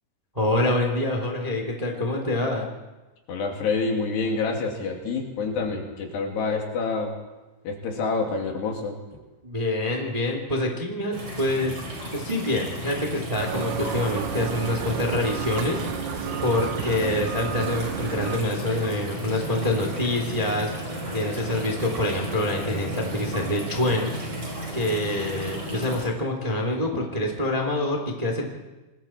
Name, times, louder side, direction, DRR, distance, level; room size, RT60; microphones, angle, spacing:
voice 1, 0.3-2.7 9.4-11.8 12.1-15.8 16.4-24.1 24.4-28.5, left 1 dB, 10° right, 2 dB, 2.0 m, -26 dB
voice 2, 3.3-7.2 7.6-9.0 26.9-27.1, left 4 dB, 75° left, 1 dB, 4.7 m, -27 dB
sound 1, 11.1-26.0, right 1 dB, 30° right, 6.0 m, -34 dB
sound 2, 13.4-18.4, right 9 dB, 70° right, 2.2 m, -32 dB
28.0 x 20.5 x 4.5 m, 1.1 s
omnidirectional pair, 4.8 m